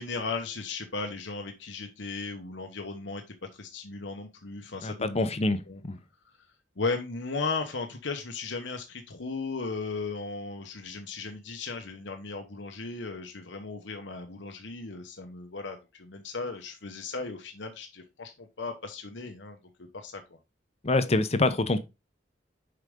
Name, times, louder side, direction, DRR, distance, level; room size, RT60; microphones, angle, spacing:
voice 1, 0.0-3.2 3.5-5.3 5.7-5.8 6.8-19.6 19.9-20.4, left 4 dB, 80° left, 1.0 m, -36 dB
voice 2, 4.8-6.0 20.8-21.8, left 2 dB, 35° left, 0.8 m, -26 dB
6.6 x 4.9 x 3.7 m
head